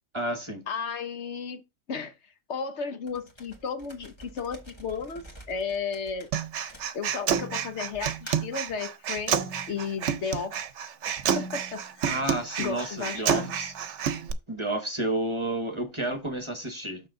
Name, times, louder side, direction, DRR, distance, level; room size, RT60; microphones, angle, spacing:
voice 1, 0.1-0.6 12.1-13.7 14.5-17.0, right 1 dB, 25° right, 1.0 m, -31 dB
voice 2, 0.7-1.6 1.9-2.1 2.5-6.3 6.9-9.4 9.7-10.6 11.3-12.2 12.6-13.5, left 5 dB, 65° left, 1.1 m, -34 dB
sound 1, 3.1-7.4 7.9-8.6, equal, 20° left, 1.7 m, -48 dB
Human voice, 6.3-14.3, right 8 dB, 65° right, 1.0 m, -29 dB
6.4 x 6.1 x 3.7 m
omnidirectional pair, 1.3 m